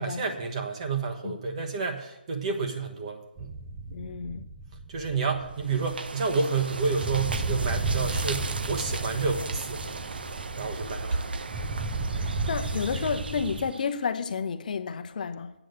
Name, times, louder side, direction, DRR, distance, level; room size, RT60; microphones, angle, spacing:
voice 1, 0.0-3.5 4.9-9.8 10.6-11.3, right 4 dB, 40° right, 1.3 m, -30 dB
sound 1, 3.4-13.7, right 3 dB, 20° right, 0.7 m, -34 dB
voice 2, 3.9-4.4 12.1-15.5, left 6 dB, 50° left, 0.7 m, -31 dB
sound 2, 5.6-14.0, right 3 dB, 65° right, 0.6 m, -36 dB
8.8 x 6.4 x 7.9 m
figure-of-eight pair, 150°, 6 cm